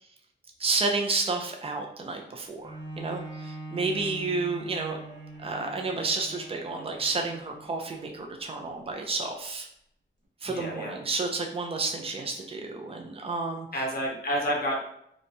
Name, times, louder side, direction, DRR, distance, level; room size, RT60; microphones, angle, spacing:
voice 1, 0.6-5.0 5.4-9.7 10.4-13.7, right 3 dB, 30° right, 2 dB, 0.4 m, -31 dB
Bowed string instrument, 2.6-8.3 8.9-9.0, right 2 dB, 70° right, 0.8 m, -42 dB
voice 2, 10.4-10.9 13.7-14.8, equal, 50° left, -1 dB, 0.7 m, -29 dB
2.9 x 2.2 x 2.6 m, 0.73 s
wide cardioid pair, 125°, 20 cm